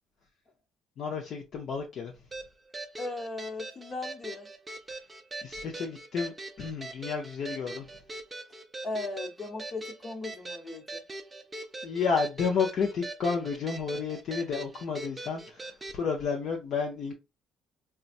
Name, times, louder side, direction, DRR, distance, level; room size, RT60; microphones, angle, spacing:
voice 1, 1.0-2.1 5.4-7.9 11.8-17.1, left 5 dB, 55° left, 0.7 m, -31 dB
sound 1, 2.3-16.0, right 2 dB, 15° right, 0.5 m, -42 dB
voice 2, 3.0-4.5 8.8-11.0, left 3 dB, 35° left, 1.2 m, -37 dB
4.1 x 2.3 x 2.5 m
cardioid pair, 130°, 0 cm